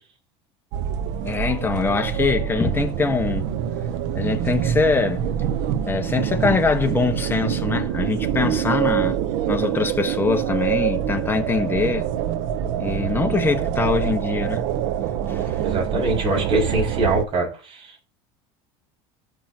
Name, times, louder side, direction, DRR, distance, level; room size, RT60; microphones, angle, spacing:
sound 1, 0.7-17.3, right 10 dB, 75° right, 0.9 m, -25 dB
voice 1, 1.2-3.6 4.1-5.3 5.7-9.2 9.5-12.1 12.8-14.6 15.0-15.7, left 4 dB, 15° left, 1.4 m, -23 dB
voice 2, 15.6-18.1, right 2 dB, 40° right, 6.4 m, -23 dB
17.0 x 6.1 x 2.9 m
supercardioid pair, 110°, 14 cm